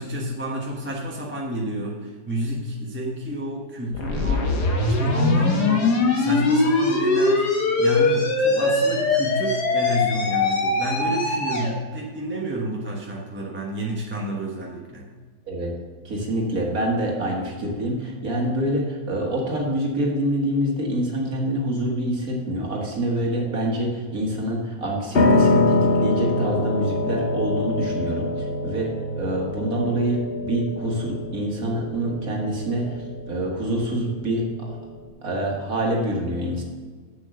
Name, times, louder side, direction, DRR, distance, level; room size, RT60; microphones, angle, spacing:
voice 1, 0.0-7.5 7.8-15.1, equal, 10° right, -3 dB, 1.0 m, -29 dB
sound 1, 3.9-11.7, left 3 dB, 75° left, 2.0 m, -21 dB
voice 2, 16.0-28.9 29.2-34.7 35.2-36.6, right 1 dB, 60° right, -1 dB, 2.1 m, -26 dB
Piano, 25.1-35.1, left 2 dB, 45° left, 1.0 m, -25 dB
7.6 x 7.4 x 6.5 m, 1.5 s
omnidirectional pair, 1.8 m